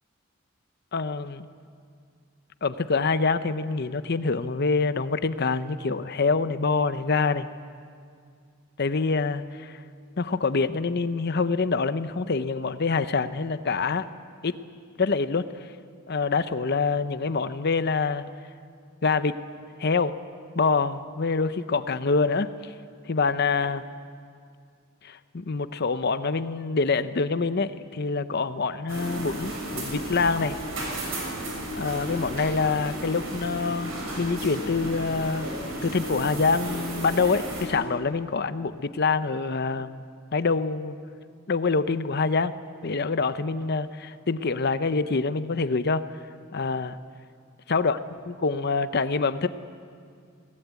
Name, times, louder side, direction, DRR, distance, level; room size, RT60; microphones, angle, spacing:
voice 1, 0.9-1.5 2.6-7.5 8.8-9.8 10.2-14.1 14.4-14.6 15.0-15.5 16.1-18.2 19.0-19.4 19.8-20.2 20.5-22.5 23.1-23.8 25.0-30.6 31.8-33.9 34.2-35.5 35.8-40.0 40.3-41.0 41.5-42.5 42.8-46.0 46.5-47.0 47.7-48.0 48.4-49.5, left 4 dB, 55° left, 12 dB, 0.7 m, -25 dB
sound 1, 28.9-37.7, right 1 dB, 85° right, 6.1 m, -33 dB
24.0 x 18.0 x 8.3 m, 2.2 s
head